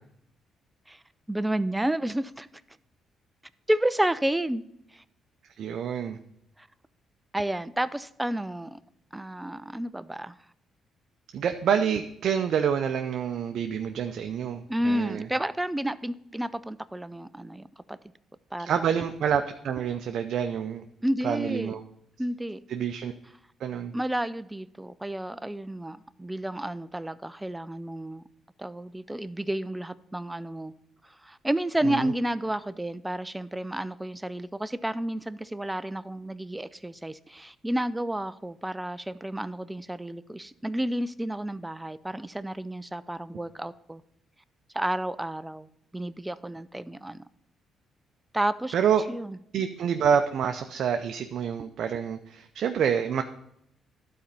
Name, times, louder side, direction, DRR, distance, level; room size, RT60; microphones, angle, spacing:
voice 1, 1.3-2.5 3.7-4.6 4.9-5.0 6.6-6.7 7.3-8.8 9.1-10.3 14.7-18.0 18.5-18.9 21.0-21.7 22.2-22.7 23.9-28.2 28.6-30.7 31.0-44.0 44.7-45.7 45.9-47.2 48.3-48.7 49.1-49.4, right 1 dB, 10° right, 14 dB, 0.4 m, -31 dB
voice 2, 5.6-6.2 11.3-15.3 18.6-20.8 21.2-21.8 22.7-23.1 23.6-23.9 31.8-32.1 48.7-49.0 49.5-53.2, right 7 dB, 65° right, 5 dB, 0.5 m, -27 dB
12.0 x 4.3 x 5.2 m, 0.75 s
cardioid pair, 90°, 0 cm